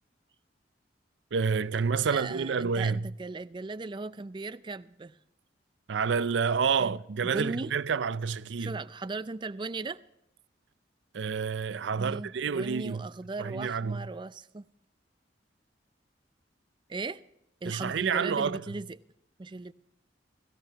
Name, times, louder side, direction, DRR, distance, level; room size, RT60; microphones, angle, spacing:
voice 1, 1.3-3.0 5.9-8.8 11.1-13.1 13.4-14.0 17.6-18.6, right 5 dB, 80° right, 0.5 m, -29 dB
voice 2, 2.0-5.2 6.8-7.7 8.6-10.0 11.9-14.7 16.9-17.2 17.6-19.0 19.4-19.7, right 3 dB, 25° right, 0.4 m, -37 dB
17.0 x 17.0 x 2.9 m
head